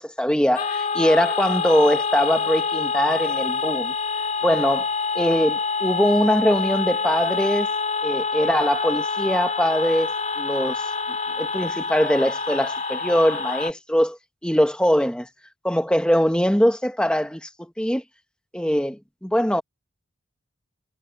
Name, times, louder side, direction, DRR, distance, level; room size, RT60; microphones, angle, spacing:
voice 1, 0.0-3.9 4.4-4.9 5.1-7.7 8.0-10.8 11.4-15.3 15.6-18.0 18.5-19.6, equal, 5° left, 1.1 m, -22 dB
sound 1, 0.5-13.7, left 4 dB, 35° left, 2.1 m, -26 dB
head